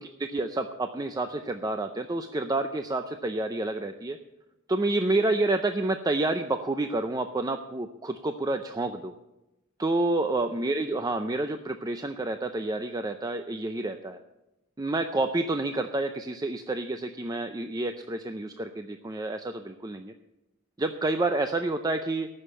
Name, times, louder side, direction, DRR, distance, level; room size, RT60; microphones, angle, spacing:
voice 1, 0.0-4.2 4.7-9.1 9.8-14.2 14.8-20.1 20.8-22.3, right 2 dB, 20° right, 7 dB, 0.5 m, -29 dB
14.0 x 6.5 x 7.8 m, 0.96 s
head